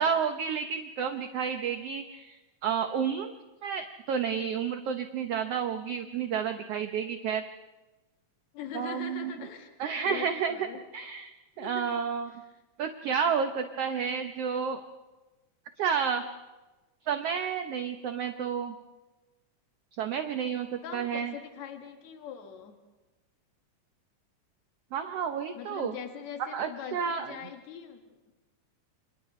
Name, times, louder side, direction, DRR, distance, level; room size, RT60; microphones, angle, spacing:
voice 1, 0.0-2.3 2.6-3.3 3.6-7.4 8.7-9.3 9.8-10.6 10.9-11.3 11.6-12.3 12.8-14.8 15.8-16.2 17.1-18.7 20.0-21.3 24.9-25.9 26.5-27.3, right 7 dB, 65° right, 6 dB, 1.6 m, -30 dB
voice 2, 8.5-9.7 10.1-10.8 11.6-11.9 12.3-12.6 20.8-22.8 25.5-28.2, left 8 dB, 65° left, 4 dB, 3.0 m, -42 dB
29.0 x 28.0 x 3.2 m, 1.1 s
omnidirectional pair, 3.6 m